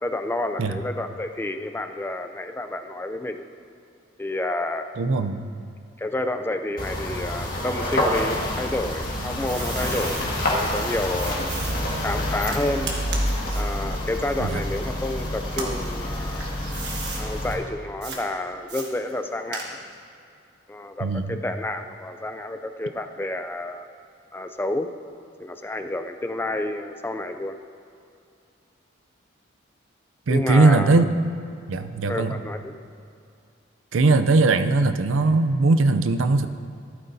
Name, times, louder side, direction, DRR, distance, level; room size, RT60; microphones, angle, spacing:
voice 1, 0.0-3.5 4.2-4.9 6.0-11.5 12.0-12.9 13.5-16.5 17.2-19.8 20.7-23.9 24.3-24.9 25.4-27.6 30.3-31.0 32.1-32.7, left 1 dB, 10° left, 7 dB, 0.4 m, -30 dB
voice 2, 5.0-5.5 14.4-14.6 16.4-16.7 21.0-21.4 30.3-31.0 31.7-32.4 33.9-36.5, right 3 dB, 85° right, 10 dB, 0.5 m, -20 dB
sound 1, 6.8-17.5, left 1 dB, 45° left, 1.9 m, -27 dB
sound 2, 8.8-10.3 11.1-15.1 15.5-17.3 18.0-18.2 18.7-20.0, right 4 dB, 55° right, 1.5 m, -36 dB
14.5 x 12.0 x 2.7 m, 2.4 s
head